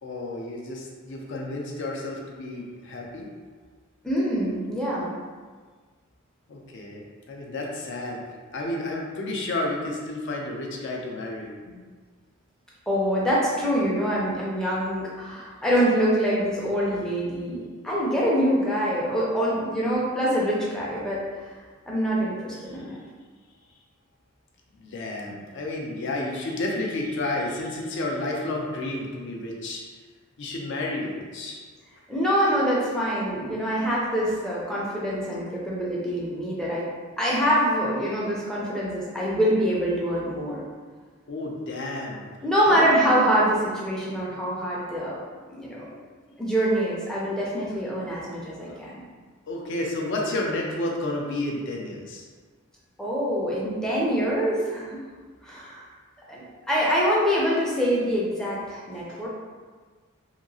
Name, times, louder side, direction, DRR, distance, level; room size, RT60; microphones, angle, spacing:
voice 1, 0.0-3.3 6.5-8.2 8.5-11.8 16.9-17.4 22.7-23.0 24.8-29.8 30.4-31.6 41.3-42.3 42.6-42.8 49.5-52.3 59.1-59.3, left 2 dB, 55° left, -1 dB, 0.5 m, -31 dB
voice 2, 4.0-5.1 12.9-21.2 21.9-23.0 32.1-36.9 37.2-40.6 42.4-45.2 45.5-45.9 46.4-48.9 53.0-55.0 55.4-55.9 56.3-59.3, equal, 5° left, -6 dB, 0.4 m, -25 dB
2.8 x 2.7 x 2.6 m, 1.5 s
head